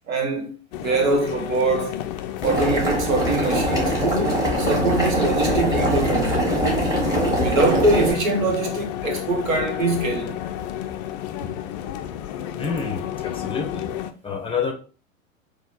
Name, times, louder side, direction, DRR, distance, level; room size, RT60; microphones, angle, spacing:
voice 1, 0.1-2.0 2.4-6.4 7.4-10.4, right 3 dB, 70° right, 1.5 m, -23 dB
sound 1, 0.7-14.1, left 11 dB, 35° left, 0.4 m, -31 dB
Boiling, 2.4-8.1, right 1 dB, 10° right, 1.9 m, -22 dB
voice 2, 12.6-13.9 14.2-14.7, left 5 dB, 15° left, 0.7 m, -28 dB
4.1 x 2.9 x 4.1 m
figure-of-eight pair, 95°, 41 cm